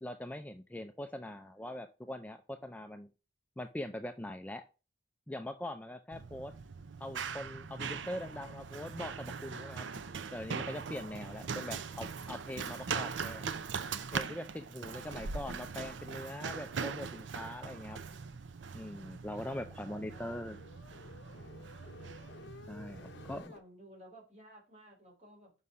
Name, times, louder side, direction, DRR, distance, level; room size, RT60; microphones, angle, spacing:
voice 1, 0.0-3.1 3.6-4.6 5.3-6.5 7.0-9.9 10.3-13.5 14.1-18.0 18.7-20.6 22.7-23.0 23.3-23.5, left 1 dB, 10° left, 7 dB, 0.4 m, -42 dB
Run, 6.1-23.4, right 5 dB, 65° right, 0.5 m, -41 dB
sound 1, 19.0-23.6, left 3 dB, 60° left, 0.7 m, -55 dB
voice 2, 19.4-20.5 22.8-25.5, right 1 dB, 35° right, 0 dB, 3.2 m, -56 dB
5.6 x 5.5 x 4.8 m, 0.32 s
head